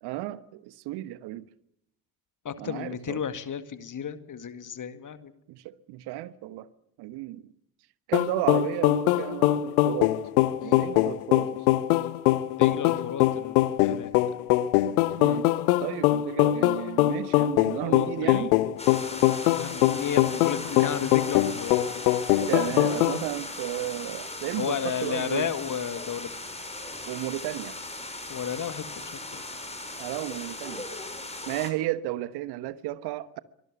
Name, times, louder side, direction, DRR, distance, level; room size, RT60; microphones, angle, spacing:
voice 1, 0.0-1.4 2.6-3.2 5.5-6.7 7.0-7.5 8.1-10.1 10.6-11.7 15.2-15.5 15.8-18.5 20.8-20.9 22.5-25.5 27.1-27.8 30.0-30.9 31.5-33.4, right 15 dB, 60° right, 1.2 m, -33 dB
voice 2, 2.4-5.4 10.6-10.8 12.6-14.1 17.6-18.5 19.5-21.8 24.6-26.3 28.3-29.4, left 8 dB, 40° left, 2.1 m, -33 dB
sound 1, 8.1-23.2, left 15 dB, 70° left, 1.1 m, -23 dB
sound 2, 18.8-31.7, left 2 dB, 15° left, 6.4 m, -38 dB
24.0 x 19.0 x 8.3 m
figure-of-eight pair, 40°, 45 cm